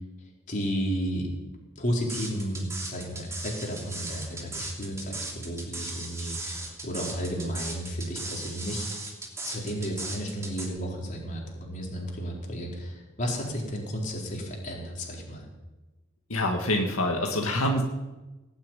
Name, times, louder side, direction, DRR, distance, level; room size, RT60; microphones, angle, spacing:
voice 1, 0.5-1.3 1.8-8.9 9.4-15.4, equal, 35° left, -2 dB, 4.2 m, -33 dB
sound 1, 2.1-10.7, right 2 dB, 15° right, 3.0 m, -37 dB
voice 2, 16.3-17.8, left 1 dB, 85° left, 2 dB, 2.0 m, -26 dB
18.5 x 7.7 x 9.1 m, 1.1 s
head